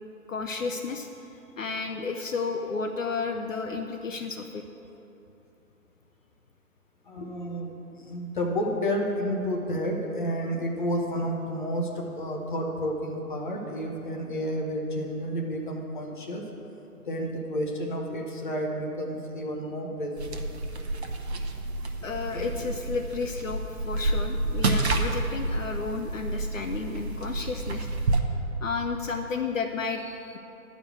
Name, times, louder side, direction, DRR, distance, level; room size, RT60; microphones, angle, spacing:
voice 1, 0.3-1.1 1.6-4.6 22.0-27.9 28.6-30.4, left 4 dB, 60° left, 5 dB, 0.7 m, -32 dB
voice 2, 7.1-16.4 17.1-20.4 22.3-22.6, equal, 35° left, 0 dB, 1.0 m, -31 dB
sound 1, 20.2-28.2, right 2 dB, 45° right, 0.9 m, -29 dB
10.5 x 5.2 x 8.0 m, 2.9 s
figure-of-eight pair, 155°, 45 cm